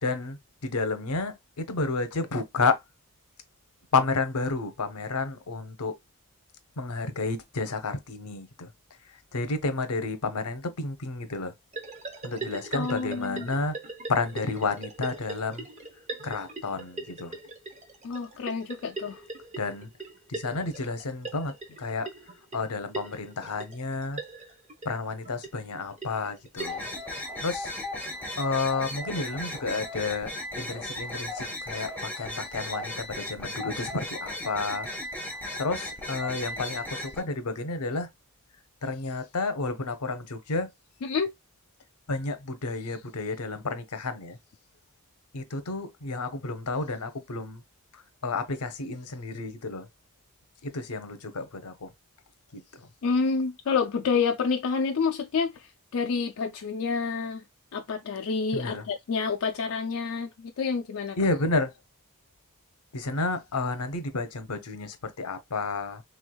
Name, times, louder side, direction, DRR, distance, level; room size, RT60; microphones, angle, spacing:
voice 1, 0.0-2.8 3.9-5.9 6.8-8.7 9.3-11.5 12.2-13.8 14.1-15.7 16.2-17.4 19.6-19.9 20.3-22.1 22.5-24.2 24.8-26.8 27.4-27.7 28.4-30.3 30.6-34.9 35.2-35.3 35.6-38.1 38.8-40.7 42.1-44.4 45.3-47.6 48.2-49.9 50.6-51.9 52.5-52.9 58.5-58.8 61.2-61.7 62.9-66.0, left 3 dB, 90° left, 0.8 m, -31 dB
sound 1, 11.7-27.0, right 3 dB, 30° right, 0.8 m, -41 dB
voice 2, 12.7-13.5 18.0-19.2 41.0-41.3 53.0-57.4 57.7-61.2, left 5 dB, 65° left, 0.4 m, -28 dB
sound 2, 26.6-37.2, left 1 dB, 5° left, 1.0 m, -36 dB
3.4 x 3.2 x 2.2 m
head